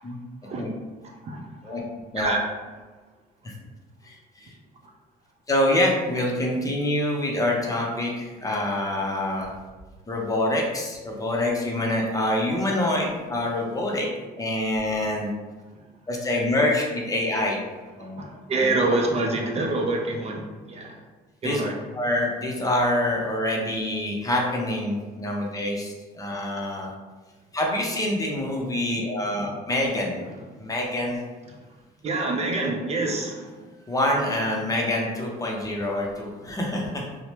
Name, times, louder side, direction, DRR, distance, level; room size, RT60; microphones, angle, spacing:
voice 1, 4.0-4.5 5.5-9.5 10.1-14.1 14.4-15.3 16.1-17.6 18.0-18.2 18.6-18.7 21.4-21.6 21.9-26.9 27.5-30.2 30.6-31.2 33.9-37.1, left 1 dB, 20° left, -1 dB, 0.5 m, -26 dB
voice 2, 18.2-20.9 21.4-21.7 32.0-33.4, right 2 dB, 40° right, 1 dB, 0.4 m, -26 dB
3.0 x 2.0 x 2.9 m, 1.3 s
cardioid pair, 110°, 17 cm